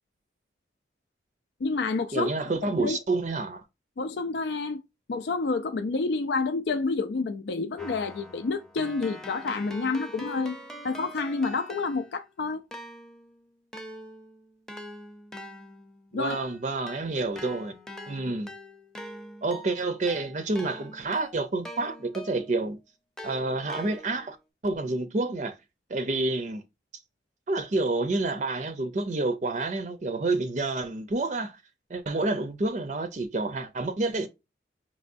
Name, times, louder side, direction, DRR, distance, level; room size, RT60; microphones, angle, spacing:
voice 1, 1.6-2.3 2.7-3.0 4.0-4.8 5.1-10.5 10.8-12.6 16.1-16.4, left 4 dB, 75° left, 0.4 m, -29 dB
voice 2, 2.1-3.6 16.1-17.7 18.1-18.5 19.4-22.8 23.2-24.4 24.6-25.6 25.9-26.6 27.5-31.6 31.9-34.3, right 2 dB, 40° right, 0.5 m, -29 dB
Keyboard (musical), 7.8-12.3 12.7-22.6 23.2-24.4, equal, 5° left, 0.6 m, -44 dB
5.3 x 3.1 x 2.5 m
head